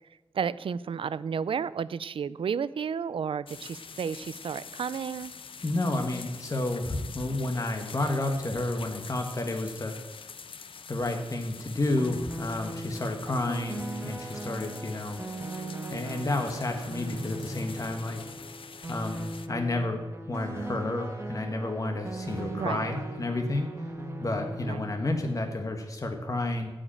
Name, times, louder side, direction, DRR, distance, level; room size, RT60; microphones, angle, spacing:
voice 1, 0.3-5.3 22.5-22.9 24.6-24.9, right 7 dB, 80° right, 17 dB, 0.4 m, -32 dB
sound 1, 3.5-19.5, left 6 dB, 80° left, 0.7 m, -45 dB
voice 2, 5.6-10.0 10.9-15.2 15.9-18.2 18.9-20.0 20.3-23.7 24.2-26.7, left 2 dB, 40° left, 4 dB, 1.3 m, -30 dB
Absolute Synth, 12.0-25.5, right 2 dB, 30° right, 1.6 m, -39 dB
15.0 x 5.1 x 8.6 m, 1.1 s
wide cardioid pair, 90°, 9 cm